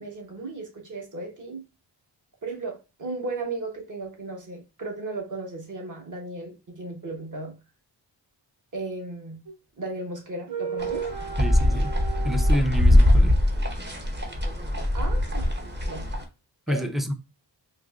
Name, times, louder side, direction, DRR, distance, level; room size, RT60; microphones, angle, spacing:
voice 1, 0.0-1.6 2.4-7.6 8.7-9.4 9.8-11.0 14.9-15.5 15.8-16.1 16.7-16.9, right 2 dB, 45° right, 1.2 m, -35 dB
sound 1, 9.5-9.6 10.5-12.6, right 7 dB, 70° right, 0.7 m, -34 dB
sound 2, 10.8-16.2, left 1 dB, 25° right, 0.8 m, -22 dB
voice 2, 11.4-12.0 12.2-13.4 16.7-17.1, equal, ahead, 0.4 m, -28 dB
3.8 x 2.8 x 2.4 m
wide cardioid pair, 80°, 44 cm